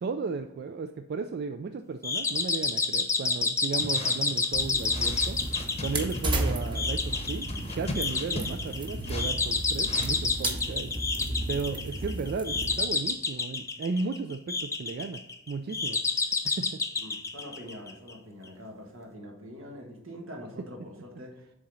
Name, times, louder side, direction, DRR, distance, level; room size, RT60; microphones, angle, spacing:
voice 1, 0.0-5.4 5.8-7.5 7.7-10.9 11.5-15.2 15.5-16.0 16.4-16.8, right 4 dB, 50° right, 8 dB, 0.3 m, -34 dB
sound 1, 2.0-18.1, left 4 dB, 15° left, 0.4 m, -30 dB
sound 2, 3.8-10.2, left 2 dB, 30° left, 0.8 m, -41 dB
sound 3, 4.5-12.8, right 1 dB, 25° right, 0.9 m, -34 dB
voice 2, 11.7-12.2 17.0-21.6, equal, 90° right, 1 dB, 1.7 m, -45 dB
7.1 x 3.8 x 6.2 m, 0.85 s
head